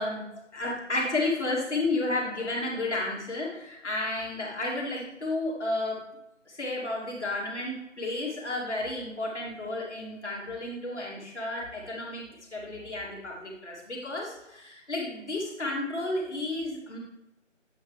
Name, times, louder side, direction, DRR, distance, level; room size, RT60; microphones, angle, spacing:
voice 1, 0.0-6.0 6.5-17.0, left 2 dB, 60° left, -3 dB, 2.5 m, -32 dB
8.2 x 5.9 x 3.2 m, 0.84 s
figure-of-eight pair, 170°, 38 cm